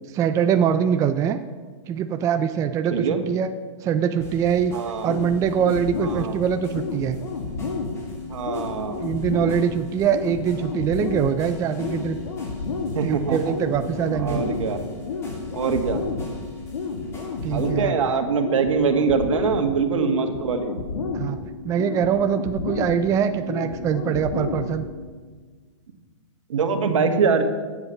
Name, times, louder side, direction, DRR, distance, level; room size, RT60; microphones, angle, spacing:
voice 1, 0.1-1.4 1.9-3.5 3.8-4.7 5.0-7.2 9.0-12.2 13.0-14.4 17.4-18.0 21.1-21.4 21.6-24.9, right 8 dB, 20° right, 9 dB, 0.5 m, -23 dB
voice 2, 2.9-3.2 4.7-5.1 6.0-6.4 8.3-9.0 12.9-13.6 14.1-14.8 15.5-16.0 17.5-20.7 26.5-27.4, right 5 dB, 80° right, 6 dB, 1.9 m, -23 dB
sound 1, 4.2-17.7, left 1 dB, 15° left, 2.9 m, -42 dB
sound 2, 5.1-25.1, left 4 dB, 80° left, 2.4 m, -31 dB
13.0 x 8.2 x 7.1 m, 1.5 s
hypercardioid pair, 145°, 16 cm